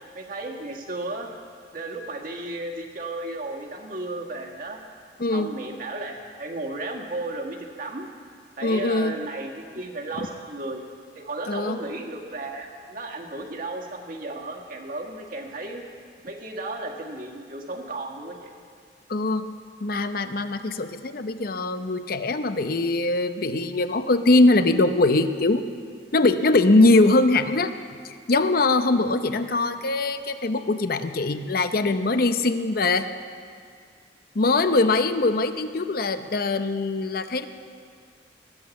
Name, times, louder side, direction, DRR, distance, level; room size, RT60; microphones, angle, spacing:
voice 1, 0.1-1.3 1.7-4.8 5.3-8.1 8.6-10.8 11.1-15.8 16.2-18.5 29.5-29.6, right 2 dB, 50° right, 1 dB, 1.7 m, -34 dB
voice 2, 5.2-5.5 8.6-9.2 11.5-11.8 19.1-19.5 19.8-25.6 26.1-27.7 28.0-33.1 34.3-37.5, left 2 dB, 55° left, 10 dB, 0.7 m, -22 dB
20.5 x 8.5 x 7.1 m, 2.1 s
head